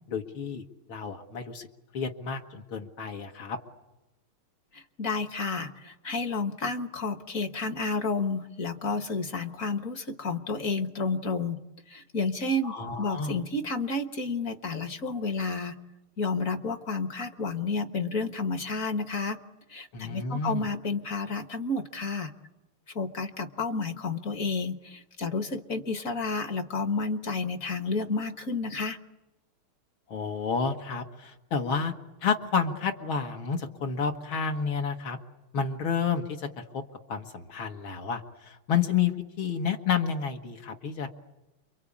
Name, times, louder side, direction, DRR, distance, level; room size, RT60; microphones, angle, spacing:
voice 1, 0.1-0.6 0.9-1.7 1.9-3.6 12.6-13.4 19.9-20.6 30.1-31.9 32.2-35.2 35.5-36.8 37.1-41.1, left 6 dB, 70° left, 3 dB, 2.3 m, -30 dB
voice 2, 4.7-11.6 11.9-15.7 16.2-19.4 19.7-22.3 22.9-29.0, left 3 dB, 45° left, 9 dB, 1.5 m, -31 dB
29.0 x 23.5 x 8.6 m, 0.99 s
omnidirectional pair, 2.4 m